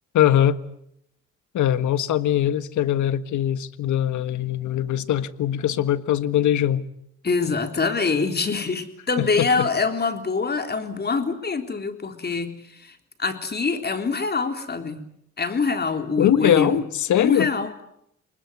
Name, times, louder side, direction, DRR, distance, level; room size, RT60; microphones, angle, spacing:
voice 1, 0.1-0.6 1.5-6.8 9.2-9.7 16.2-17.5, left 11 dB, 75° left, 1.6 m, -21 dB
voice 2, 7.2-15.0 15.4-16.8 17.1-17.8, left 4 dB, 35° left, 3.6 m, -25 dB
29.0 x 20.5 x 9.7 m
cardioid pair, 90°, 30 cm